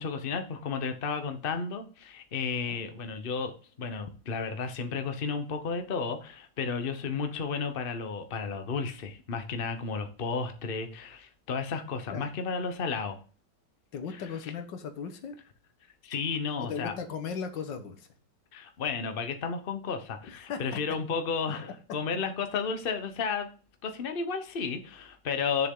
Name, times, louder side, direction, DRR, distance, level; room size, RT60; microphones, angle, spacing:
voice 1, 0.0-13.2 14.1-14.3 16.0-16.9 18.5-23.5 23.8-25.7, left 5 dB, 35° left, 7 dB, 1.1 m, -33 dB
voice 2, 13.9-15.4 16.6-18.1 20.4-20.8, left 6 dB, 90° left, 7 dB, 1.9 m, -37 dB
8.6 x 7.0 x 3.8 m, 0.38 s
omnidirectional pair, 1.9 m